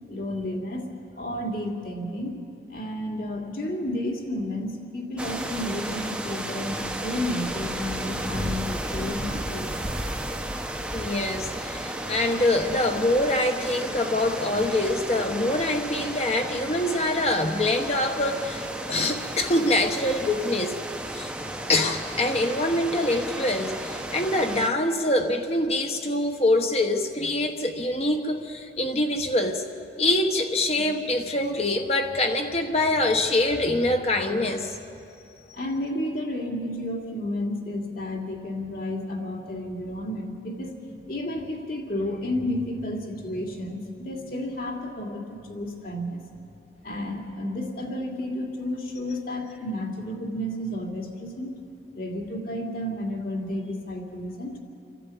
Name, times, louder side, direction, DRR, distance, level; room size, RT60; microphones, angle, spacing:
voice 1, 0.1-0.9 1.2-2.3 2.7-9.9 35.5-40.8 41.1-46.2 46.8-51.6 51.9-54.6, left 1 dB, 50° left, 1 dB, 2.7 m, -31 dB
sound 1, 5.2-24.7, right 1 dB, 5° right, 0.8 m, -33 dB
voice 2, 10.9-20.8 21.1-21.3 21.7-29.6 30.0-34.8, left 1 dB, 35° left, 5 dB, 1.2 m, -24 dB
28.5 x 12.0 x 8.5 m, 2.6 s
head